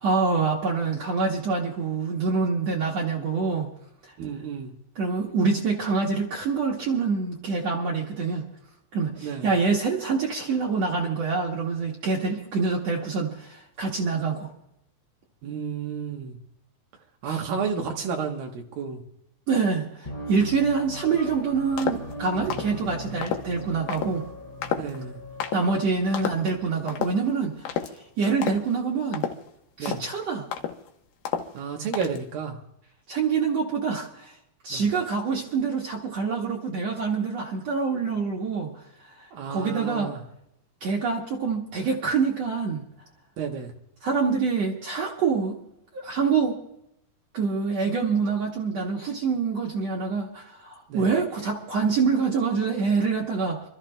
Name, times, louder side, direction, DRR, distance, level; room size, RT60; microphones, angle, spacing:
voice 1, 0.0-3.7 5.0-8.4 8.9-14.5 17.3-17.4 19.5-24.3 25.5-27.6 28.2-29.3 29.8-30.5 33.1-34.3 34.6-38.7 39.5-40.1 40.8-42.9 44.0-45.6 45.9-46.6 47.3-53.6, right 5 dB, 55° right, -3 dB, 2.4 m, -26 dB
voice 2, 4.2-4.7 9.2-9.5 15.4-16.4 17.2-19.0 24.8-25.2 29.8-30.0 31.5-32.6 34.7-34.8 39.3-40.2 43.4-43.7 50.9-51.1, right 6 dB, 80° right, 1 dB, 2.9 m, -31 dB
sound 1, 20.0-27.4, equal, 15° left, 2.4 m, -39 dB
sound 2, 21.8-22.1 22.5-22.8 23.2-23.5 23.9-24.1 24.6-25.0 25.4-25.6 26.1-26.5 26.9-27.2 27.7-28.0 28.4-28.7 29.1-29.5 29.9-30.1 30.5-30.9 31.3-31.6 31.9-32.3, left 8 dB, 75° left, 2.8 m, -30 dB
29.0 x 13.5 x 2.2 m, 0.79 s
omnidirectional pair, 4.1 m